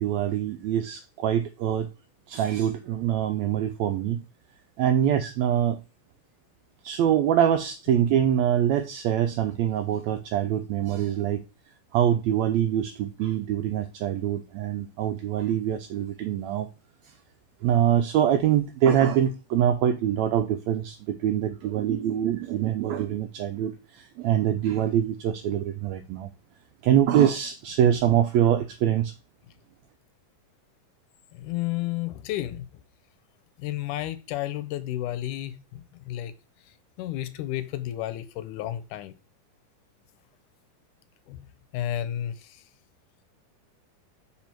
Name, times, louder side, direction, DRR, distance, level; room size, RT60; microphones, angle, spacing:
voice 1, 0.0-1.9 2.3-4.2 4.8-5.8 6.8-11.4 11.9-16.7 17.6-26.3 26.8-29.1, right 10 dB, 85° right, 1.5 m, -24 dB
voice 2, 31.3-32.7 33.6-36.3 37.0-39.1 41.3-41.5 41.7-42.6, left 13 dB, 85° left, 2.1 m, -32 dB
6.1 x 4.2 x 4.4 m
omnidirectional pair, 3.7 m